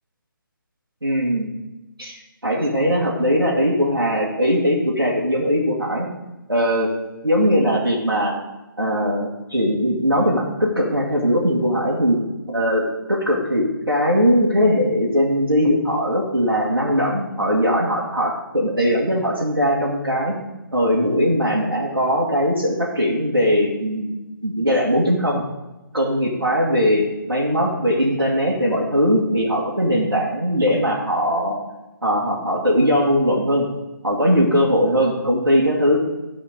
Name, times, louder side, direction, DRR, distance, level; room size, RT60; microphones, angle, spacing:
voice 1, 1.0-1.5 2.0-6.1 6.5-6.9 7.2-8.3 8.8-12.2 12.5-12.8 13.1-20.4 20.7-24.1 24.4-25.4 25.9-31.6 32.0-33.6 34.0-36.0, equal, 85° right, -6 dB, 2.1 m, -20 dB
13.0 x 5.0 x 5.3 m, 1.0 s
figure-of-eight pair, 145°, 12 cm